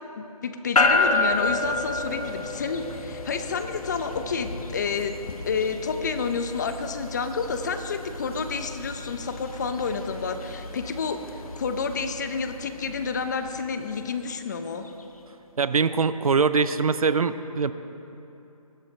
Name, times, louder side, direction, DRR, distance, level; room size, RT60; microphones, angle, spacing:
voice 1, 0.2-5.1 5.5-11.2 11.6-14.8, left 5 dB, 30° left, 8 dB, 0.7 m, -29 dB
sound 1, 0.8-15.0, left 3 dB, 70° left, 1.5 m, -31 dB
voice 2, 15.6-17.7, right 5 dB, 70° right, 13 dB, 0.7 m, -22 dB
20.5 x 16.5 x 3.3 m, 2.9 s
figure-of-eight pair, 160°, 19 cm